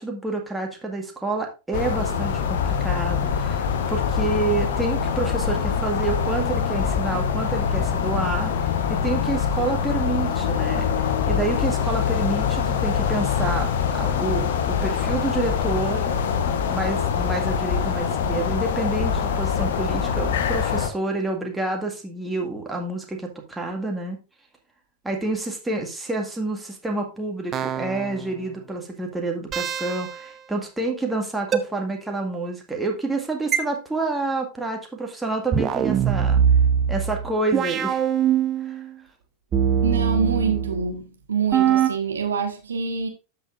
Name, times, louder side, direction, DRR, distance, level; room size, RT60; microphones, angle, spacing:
voice 1, 0.0-16.1 16.7-24.2 25.0-36.4 36.9-38.0 38.6-38.8, right 2 dB, 5° right, 1.9 m, -28 dB
sound 1, 1.7-20.9, left 7 dB, 55° left, 1.0 m, -24 dB
sound 2, 27.5-28.3 29.5-30.3 31.5-31.6 33.5-33.6 35.5-38.9 39.5-41.0 41.5-41.9, right 8 dB, 25° right, 0.8 m, -22 dB
voice 2, 39.8-43.1, right 5 dB, 70° right, 1.6 m, -26 dB
12.5 x 5.7 x 2.5 m
figure-of-eight pair, 90°, 0 cm